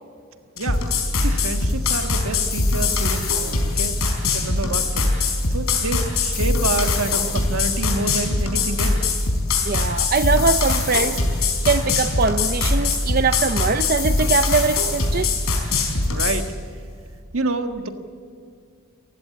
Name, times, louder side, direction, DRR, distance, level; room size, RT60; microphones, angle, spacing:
sound 1, 0.6-16.4, left 3 dB, 85° left, 4.6 m, -22 dB
voice 1, 1.2-4.0 4.3-9.1 16.1-16.5 17.3-17.9, right 2 dB, 80° right, 6 dB, 1.7 m, -28 dB
voice 2, 9.6-15.3, right 4 dB, 45° right, 10 dB, 0.6 m, -22 dB
29.0 x 15.5 x 8.5 m, 2.3 s
head